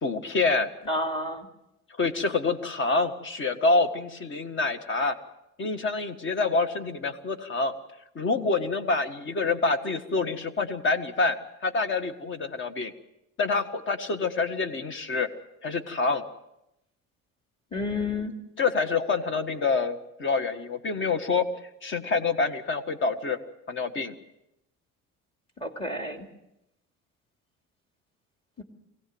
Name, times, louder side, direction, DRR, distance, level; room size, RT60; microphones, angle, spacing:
voice 1, 0.0-0.7 2.0-5.1 5.6-7.7 8.1-11.4 11.6-12.9 13.4-15.3 15.6-16.2 18.6-21.5 21.8-23.4 23.7-24.1, left 3 dB, 40° left, 9 dB, 1.7 m, -26 dB
voice 2, 0.9-1.5 17.7-18.3 25.6-26.3 28.6-28.7, left 2 dB, 20° left, 3 dB, 2.6 m, -30 dB
24.0 x 17.0 x 7.9 m, 0.87 s
cardioid pair, 145°, 30 cm